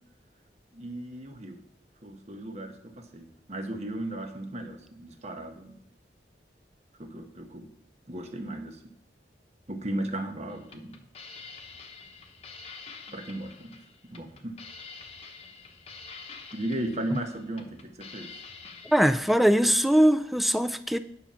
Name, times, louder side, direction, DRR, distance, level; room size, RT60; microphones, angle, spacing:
voice 1, 0.7-1.6 2.0-5.7 7.0-7.7 8.1-8.8 9.7-10.9 13.1-13.8 14.1-14.6 16.5-18.4, right 1 dB, 40° right, 5 dB, 1.1 m, -36 dB
sound 1, 10.5-19.4, left 4 dB, 35° left, 0.9 m, -47 dB
voice 2, 18.9-21.0, equal, ahead, 12 dB, 0.4 m, -21 dB
9.8 x 6.0 x 5.6 m, 0.71 s
head